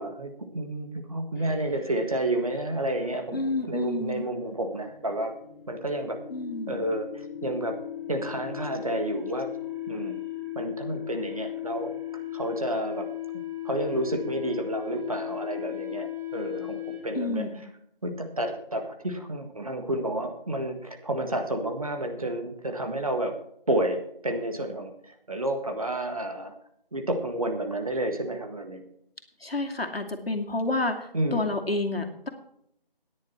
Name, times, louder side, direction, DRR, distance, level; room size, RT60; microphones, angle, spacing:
voice 1, 0.0-5.3 5.7-6.2 6.7-7.7 8.1-9.5 9.9-10.2 10.5-11.9 12.3-13.1 13.6-17.5 18.0-23.3 23.7-26.5 26.9-28.8 31.1-31.5, right 1 dB, 40° right, 6 dB, 1.6 m, -30 dB
sound 1, 1.3-17.3, left 12 dB, 5° left, 4.2 m, -37 dB
voice 2, 3.3-4.2 6.3-6.8 17.2-17.5 29.4-32.3, left 2 dB, 90° left, 3 dB, 2.6 m, -29 dB
13.5 x 10.5 x 4.4 m, 0.72 s
figure-of-eight pair, 170°, 29 cm